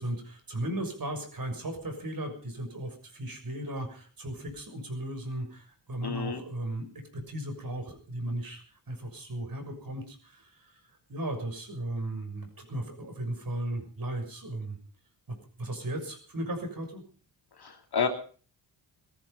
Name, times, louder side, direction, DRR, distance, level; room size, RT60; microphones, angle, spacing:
voice 1, 0.0-14.8 15.3-17.0, right 1 dB, 45° right, 5 dB, 6.4 m, -36 dB
voice 2, 6.0-6.4 17.6-18.1, left 6 dB, 50° left, 5 dB, 2.9 m, -30 dB
19.0 x 13.5 x 5.5 m, 0.41 s
cardioid pair, 85°, 47 cm